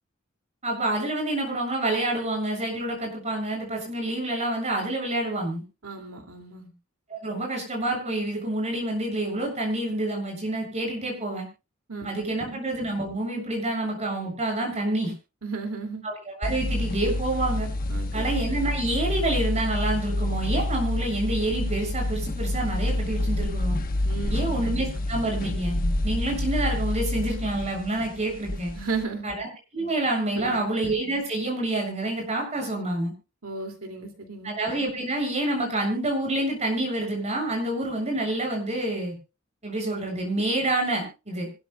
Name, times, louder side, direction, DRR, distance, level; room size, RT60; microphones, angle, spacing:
voice 1, 0.6-5.6 7.1-11.5 12.0-15.1 16.0-17.7 18.1-23.8 24.3-25.8 26.0-28.7 29.2-29.5 29.7-33.1 34.4-39.1 39.6-41.5, right 1 dB, 35° right, 1 dB, 7.2 m, -28 dB
voice 2, 5.8-6.7 11.9-12.1 15.4-16.0 17.9-18.3 24.0-24.5 28.7-29.3 30.3-30.6 33.4-34.6, right 4 dB, 90° right, 3 dB, 2.6 m, -34 dB
sound 1, 16.4-29.0, left 1 dB, 45° left, 1.1 m, -28 dB
25.5 x 12.5 x 2.3 m, 0.29 s
head